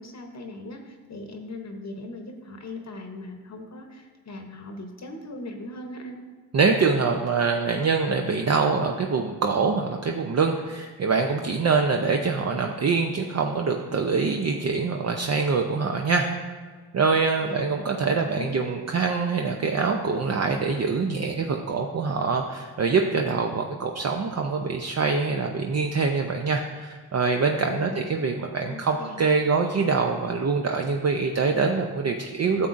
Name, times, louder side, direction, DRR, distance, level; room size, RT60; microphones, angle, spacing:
voice 1, 0.0-6.2 17.4-17.7 18.3-18.8 27.8-28.0 28.7-29.1, left 2 dB, 45° left, 4 dB, 0.9 m, -39 dB
voice 2, 6.5-16.3 16.9-32.7, right 4 dB, 45° right, 3 dB, 0.6 m, -24 dB
9.8 x 7.2 x 2.5 m, 1.5 s
cardioid pair, 60°, 38 cm